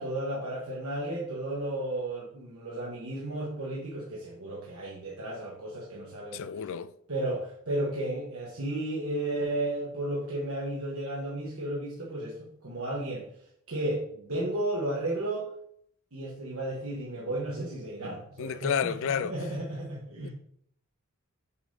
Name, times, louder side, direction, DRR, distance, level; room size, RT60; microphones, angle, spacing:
voice 1, 0.0-6.6 7.1-13.2 13.7-15.4 16.1-20.3, right 1 dB, 75° right, 1.2 m, -33 dB
voice 2, 6.3-6.9 18.4-19.3 20.2-20.3, left 7 dB, 60° left, 0.3 m, -30 dB
6.8 x 5.2 x 2.7 m
head